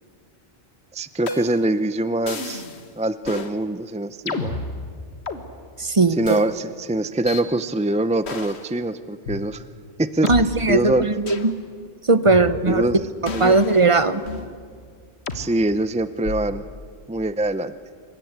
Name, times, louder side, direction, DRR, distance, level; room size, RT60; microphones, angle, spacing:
voice 1, 0.9-2.6 3.0-4.6 6.2-9.6 10.0-10.3 10.7-11.1 12.7-13.0 13.3-13.6 15.3-16.6 17.1-17.7, right 1 dB, 10° right, 13 dB, 0.3 m, -24 dB
sound 1, 1.3-1.7 2.3-2.8 3.2-3.5 4.3-5.4 6.2-6.4 7.3-7.4 8.2-8.7 9.3-9.4 10.3-10.4 11.3-11.5 12.3-12.8 13.3-14.5 15.3-15.4 16.2-16.6, left 3 dB, 65° left, 1.8 m, -31 dB
voice 2, 5.8-6.4 10.2-11.5 12.0-12.9 13.2-14.2, right 3 dB, 30° right, 13 dB, 0.8 m, -18 dB
27.0 x 22.5 x 8.1 m, 2.1 s
omnidirectional pair, 1.2 m